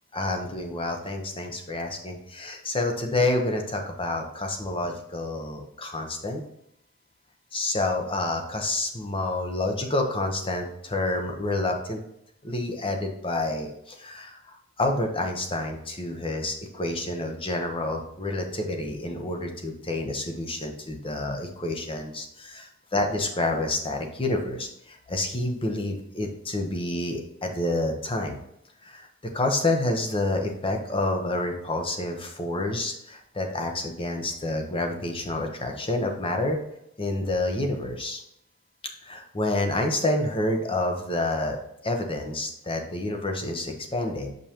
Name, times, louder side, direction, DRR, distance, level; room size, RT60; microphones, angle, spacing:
voice 1, 0.1-6.4 7.5-12.0 12.4-28.4 28.8-36.6 37.0-38.2 39.0-44.3, left 2 dB, 25° left, 3 dB, 0.9 m, -28 dB
6.6 x 5.4 x 2.9 m, 0.75 s
head